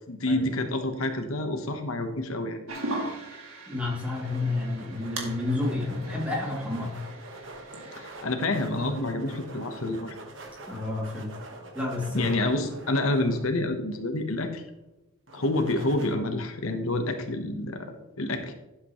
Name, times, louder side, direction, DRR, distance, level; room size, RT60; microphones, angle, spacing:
voice 1, 0.1-2.6 7.9-10.2 12.1-14.6 15.3-18.5, left 2 dB, 75° left, 6 dB, 1.1 m, -28 dB
sound 1, 2.7-8.2, right 2 dB, 80° right, 2.2 m, -39 dB
voice 2, 3.7-6.9 10.7-11.3 11.7-12.2, left 2 dB, 5° right, -3 dB, 2.7 m, -30 dB
sound 2, 4.1-14.0 15.3-16.1, right 1 dB, 60° right, 1.4 m, -45 dB
11.5 x 7.9 x 3.1 m, 0.98 s
head